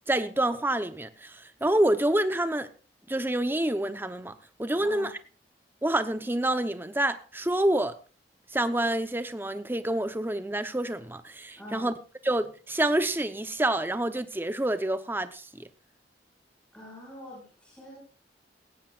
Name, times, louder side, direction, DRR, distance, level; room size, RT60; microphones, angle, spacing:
voice 1, 0.1-2.7 3.1-5.1 5.8-7.9 8.5-11.9 12.2-15.7, right 1 dB, 10° right, 0.9 m, -27 dB
voice 2, 4.8-5.1 11.6-11.9 16.7-18.0, left 1 dB, 5° left, 6.4 m, -44 dB
18.0 x 16.5 x 2.5 m
head